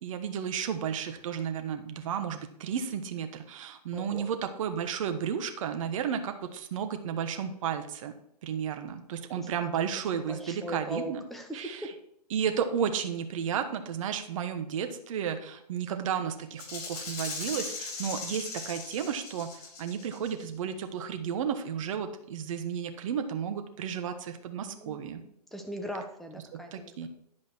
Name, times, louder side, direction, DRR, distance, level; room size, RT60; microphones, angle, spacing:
voice 1, 0.0-8.1 8.4-11.2 11.5-11.9 12.3-25.2 26.5-27.1, right 8 dB, 50° right, 7 dB, 1.3 m, -33 dB
voice 2, 3.9-4.3 9.4-9.7 10.1-11.9 24.6-27.1, equal, ahead, 4 dB, 1.0 m, -40 dB
Rattle (instrument), 16.6-20.4, left 3 dB, 60° left, 4.4 m, -39 dB
11.0 x 5.1 x 6.2 m, 0.75 s
hypercardioid pair, 135°, 21 cm